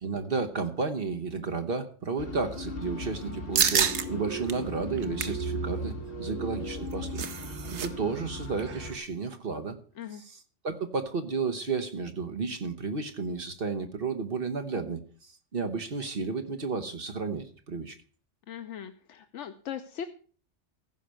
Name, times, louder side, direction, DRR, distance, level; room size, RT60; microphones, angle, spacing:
voice 1, 0.0-7.2 7.5-9.8 10.1-18.0, right 4 dB, 50° right, 7 dB, 1.2 m, -32 dB
sound 1, 2.2-8.9, right 1 dB, 55° left, 2.2 m, -36 dB
sound 2, 3.6-4.1 4.5-4.6 5.0-5.4 6.7-7.9 8.1-8.3 8.6-8.9, right 8 dB, 70° right, 1.1 m, -28 dB
voice 2, 18.5-20.1, left 9 dB, 80° left, 9 dB, 1.0 m, -39 dB
15.0 x 5.8 x 6.4 m, 0.42 s
omnidirectional pair, 1.2 m